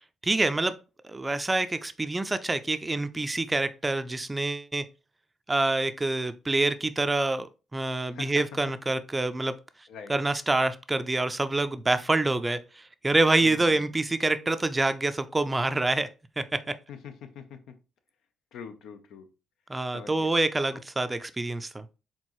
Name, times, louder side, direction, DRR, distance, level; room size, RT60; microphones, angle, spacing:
voice 1, 0.2-0.8 1.0-4.8 5.5-9.5 10.1-16.1 16.4-16.6 19.7-21.8, right 2 dB, 20° right, 0.4 m, -26 dB
voice 2, 8.1-8.4 9.9-10.1 13.4-13.9 16.9-17.7 18.5-19.3 19.9-20.3, left 7 dB, 80° left, 0.7 m, -43 dB
4.4 x 3.8 x 3.0 m
cardioid pair, 90°, 0 cm